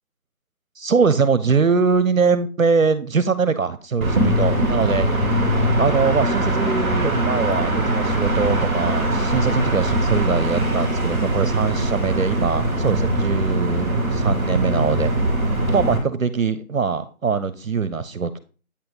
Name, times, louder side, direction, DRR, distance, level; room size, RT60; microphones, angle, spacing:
voice 1, 0.8-5.1 5.8-15.1 15.7-18.4, right 5 dB, 65° right, 14 dB, 0.7 m, -22 dB
sound 1, 4.0-16.0, right 1 dB, 10° left, 1.7 m, -21 dB
8.6 x 3.1 x 5.3 m, 0.38 s
figure-of-eight pair, 175°, 43 cm